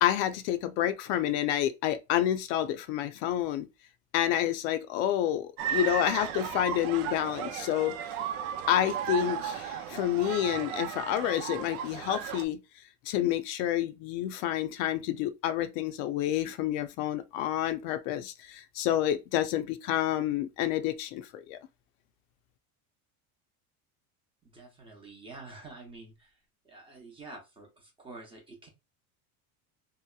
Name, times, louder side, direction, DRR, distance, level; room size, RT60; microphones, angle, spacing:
voice 1, 0.0-3.7 4.1-8.0 8.7-12.6 13.1-21.6, left 12 dB, 70° left, 0.5 m, -29 dB
sound 1, 5.6-12.4, right 9 dB, 90° right, 0.5 m, -35 dB
voice 2, 24.4-26.4 26.6-28.7, right 3 dB, 15° right, 0.7 m, -48 dB
2.8 x 2.0 x 2.2 m
cardioid pair, 150°, 40 cm